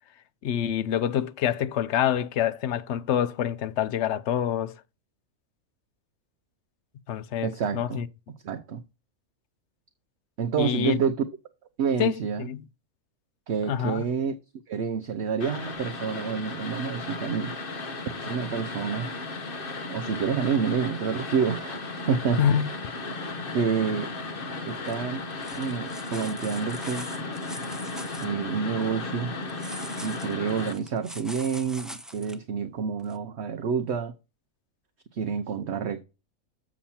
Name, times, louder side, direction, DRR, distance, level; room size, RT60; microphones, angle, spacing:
voice 1, 0.4-4.8 7.1-8.1 10.6-11.0 12.0-12.7 13.6-14.1 22.4-22.7, left 9 dB, 60° left, 0.8 m, -26 dB
voice 2, 7.4-8.1 8.4-8.8 10.4-11.2 11.8-12.5 13.5-14.3 14.7-17.5 18.2-19.1 19.9-21.8 22.1-22.4 23.5-24.1 24.7-25.2 25.5-27.2 28.2-29.3 30.0-34.1 35.1-36.0, right 6 dB, 55° right, 0.9 m, -28 dB
sound 1, 15.4-30.7, left 3 dB, 40° left, 1.2 m, -35 dB
sound 2, 24.8-24.9 25.3-28.3 29.5-32.4 33.1-33.2, equal, ahead, 0.5 m, -43 dB
7.3 x 7.1 x 4.3 m
omnidirectional pair, 1.5 m